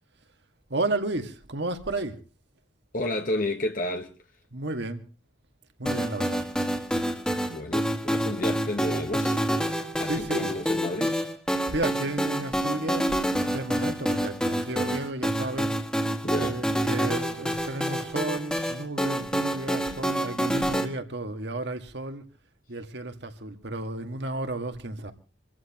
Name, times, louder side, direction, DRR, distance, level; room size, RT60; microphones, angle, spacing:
voice 1, 0.7-2.2 4.5-5.0 5.8-6.4 10.0-10.5 11.7-15.7 16.3-22.2 22.7-25.1, right 2 dB, 60° right, 1.9 m, -33 dB
voice 2, 2.9-4.1 7.5-9.4 10.0-11.2 16.2-16.6, left 1 dB, 45° left, 1.3 m, -31 dB
sound 1, 5.9-20.9, equal, 5° left, 2.0 m, -28 dB
27.0 x 14.0 x 3.0 m
head